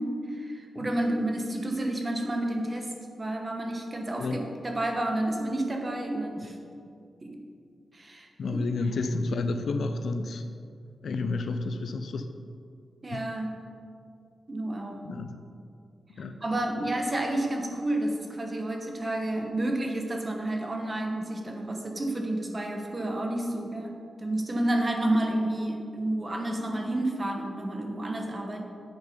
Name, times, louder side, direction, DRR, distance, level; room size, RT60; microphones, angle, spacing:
voice 1, 0.0-2.9 3.2-6.6 7.2-7.4 7.9-8.3 13.0-13.6 14.5-15.0 16.4-28.6, right 1 dB, 25° right, 3 dB, 1.1 m, -30 dB
voice 2, 8.4-10.4 11.0-12.3 13.1-13.2 15.0-15.4 16.1-16.4, left 3 dB, 60° left, 8 dB, 0.6 m, -30 dB
10.5 x 8.2 x 5.1 m, 2.3 s
wide cardioid pair, 175°, 0 cm